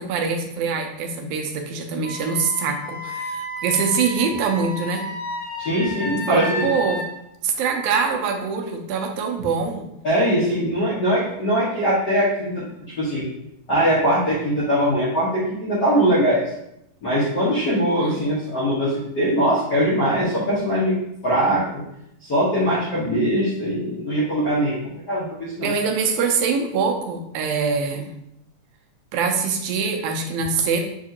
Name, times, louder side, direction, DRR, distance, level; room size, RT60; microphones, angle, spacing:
voice 1, 0.0-5.1 6.3-7.0 7.4-9.9 17.9-18.2 25.6-28.1 29.1-30.8, right 5 dB, 85° right, 3 dB, 2.0 m, -24 dB
Wind instrument woodwind instrument, 2.0-7.1, left 1 dB, 85° left, 0.9 m, -32 dB
voice 2, 5.6-6.7 10.0-12.6 13.0-13.3 13.7-16.4 17.0-21.0 21.2-21.8 22.2-25.7, equal, 65° left, -10 dB, 1.0 m, -21 dB
7.0 x 2.4 x 2.7 m, 0.80 s
omnidirectional pair, 3.4 m